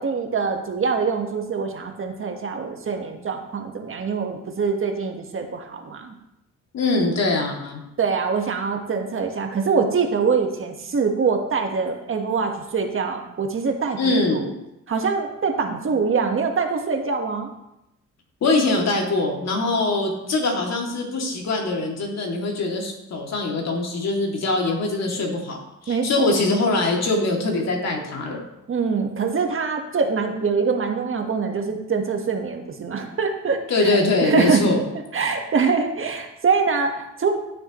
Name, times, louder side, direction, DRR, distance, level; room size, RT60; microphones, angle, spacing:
voice 1, 0.0-6.1 8.0-14.5 14.9-17.5 25.9-26.2 28.7-33.9 34.2-34.6 35.1-37.3, right 5 dB, 45° right, 3 dB, 1.5 m, -24 dB
voice 2, 6.7-7.8 13.9-14.4 18.4-25.6 25.8-28.4 33.7-34.8, left 2 dB, 60° left, 0 dB, 2.6 m, -22 dB
15.5 x 7.0 x 3.1 m, 0.88 s
cardioid pair, 90°, 30 cm